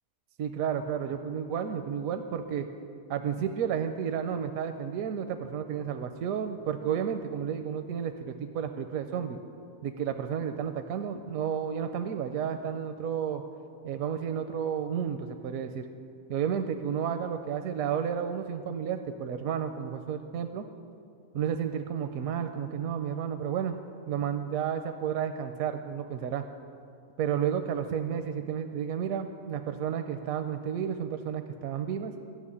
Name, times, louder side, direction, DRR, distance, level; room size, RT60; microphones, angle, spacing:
voice 1, 0.4-2.7 3.1-9.4 9.8-13.4 13.8-15.9 16.3-20.7 21.3-23.8 24.1-26.5 27.2-32.1, right 8 dB, 80° right, 7 dB, 1.0 m, -32 dB
13.5 x 6.2 x 9.7 m, 2.4 s
omnidirectional pair, 1.5 m